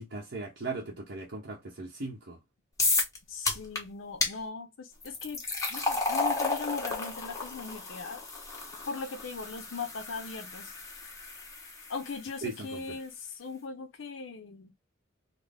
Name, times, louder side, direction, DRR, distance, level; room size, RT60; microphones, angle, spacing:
voice 1, 0.0-2.4 12.4-13.0, right 3 dB, 60° right, 0.8 m, -38 dB
sound 1, 2.8-3.2 3.5-3.8 4.2-4.3 5.0-12.1, left 3 dB, 15° left, 1.1 m, -32 dB
voice 2, 3.3-5.4 5.7-8.2 8.9-10.7 11.9-14.7, left 4 dB, 75° left, 0.6 m, -39 dB
4.0 x 2.0 x 3.4 m
head